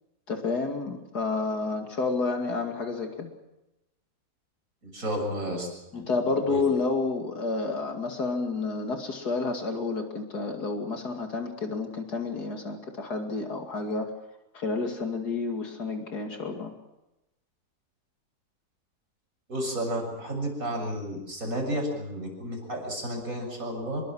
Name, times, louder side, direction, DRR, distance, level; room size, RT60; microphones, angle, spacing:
voice 1, 0.3-3.3 5.9-14.1 14.5-16.7, left 3 dB, 85° left, 4 dB, 2.9 m, -30 dB
voice 2, 4.8-5.7 5.9-6.1 6.5-6.6 19.5-24.0, equal, 60° right, 1 dB, 7.2 m, -32 dB
26.0 x 22.0 x 6.3 m, 0.94 s
omnidirectional pair, 1.7 m